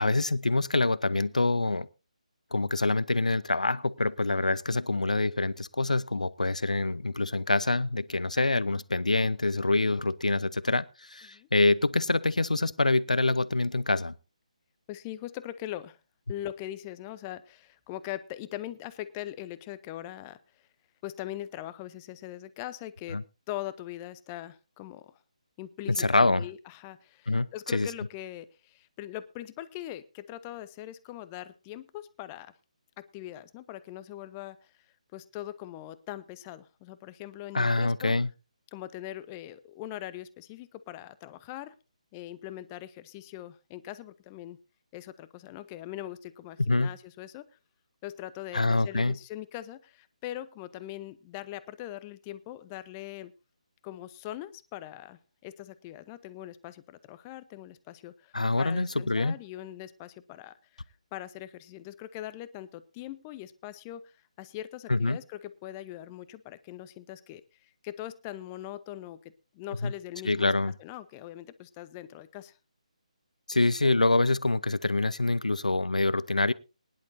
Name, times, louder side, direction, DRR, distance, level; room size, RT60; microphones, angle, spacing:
voice 1, 0.0-1.9 2.5-14.1 23.1-23.2 25.9-26.5 27.3-27.9 37.5-38.3 46.7-46.9 48.5-49.2 58.3-59.4 64.9-65.2 69.8-69.9 70.2-70.7 73.5-76.5, left 2 dB, 75° left, 0.7 m, -26 dB
voice 2, 14.9-16.0 16.3-20.4 21.0-23.2 23.5-25.2 25.6-32.5 33.0-34.6 35.1-38.1 38.7-41.7 42.1-44.6 44.9-47.4 48.0-53.3 53.8-60.8 61.1-64.1 64.4-70.5 70.8-72.5, left 13 dB, 20° left, 0.5 m, -41 dB
21.0 x 11.0 x 2.6 m
figure-of-eight pair, 145°, 4 cm